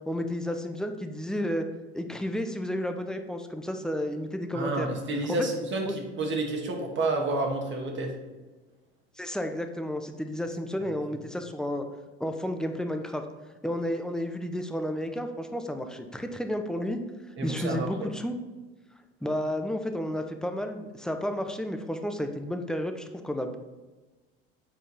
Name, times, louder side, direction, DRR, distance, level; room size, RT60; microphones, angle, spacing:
voice 1, 0.1-1.6 1.9-4.9 5.3-5.4 5.8-5.9 9.2-11.9 12.2-13.2 13.6-17.0 17.4-18.4 19.2-23.6, equal, ahead, 5 dB, 0.8 m, -32 dB
voice 2, 4.5-8.2 17.4-17.9, right 2 dB, 40° right, 2 dB, 1.9 m, -29 dB
8.0 x 4.5 x 4.3 m, 1.2 s
hypercardioid pair, 75°, 29 cm